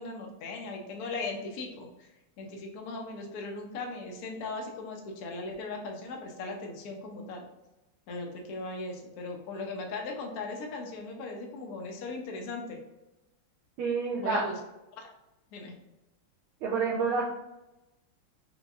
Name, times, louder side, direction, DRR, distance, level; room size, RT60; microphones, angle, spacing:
voice 1, 0.0-7.4 8.1-12.8 14.2-14.5 15.0-15.1 15.5-15.7, left 3 dB, 65° left, 1 dB, 1.0 m, -38 dB
voice 2, 13.8-14.4 16.6-17.2, right 5 dB, 85° right, -4 dB, 1.6 m, -28 dB
5.3 x 2.9 x 2.4 m, 0.96 s
omnidirectional pair, 2.3 m